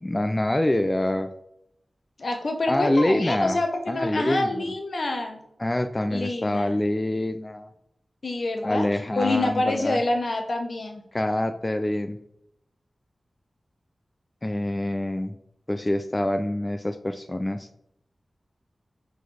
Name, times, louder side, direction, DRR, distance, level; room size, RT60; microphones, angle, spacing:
voice 1, 0.0-1.3 2.7-3.6 3.9-4.7 5.6-7.7 8.6-10.0 11.1-12.2 14.4-15.4 15.7-17.7, left 1 dB, 20° left, 9 dB, 0.4 m, -25 dB
voice 2, 2.2-5.4 6.1-6.7 8.2-8.9 9.2-11.0, left 2 dB, 60° left, 4 dB, 0.9 m, -27 dB
7.5 x 4.0 x 3.3 m, 0.76 s
wide cardioid pair, 105°, 0 cm